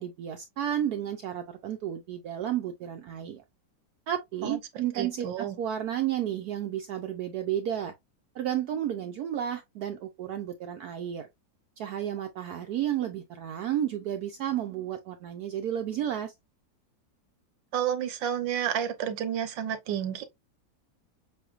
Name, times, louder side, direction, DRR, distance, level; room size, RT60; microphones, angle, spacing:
voice 1, 0.0-3.4 4.1-7.9 8.3-11.3 11.8-16.3, right 10 dB, 70° right, 1.0 m, -32 dB
voice 2, 4.4-5.6 17.7-20.2, right 9 dB, 85° right, 1.5 m, -31 dB
7.6 x 2.6 x 2.4 m
omnidirectional pair, 2.0 m